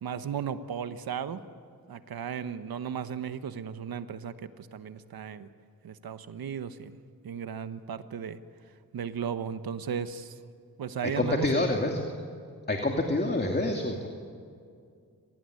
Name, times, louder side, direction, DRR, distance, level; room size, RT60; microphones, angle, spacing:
voice 1, 0.0-1.4 1.9-5.5 5.8-7.0 7.2-8.4 8.9-10.4 10.8-11.5, right 7 dB, 85° right, 11 dB, 1.3 m, -35 dB
voice 2, 11.0-12.0 12.7-14.1, left 2 dB, 30° left, 2 dB, 2.6 m, -27 dB
27.0 x 18.5 x 9.8 m, 2.3 s
cardioid pair, 75°, 35 cm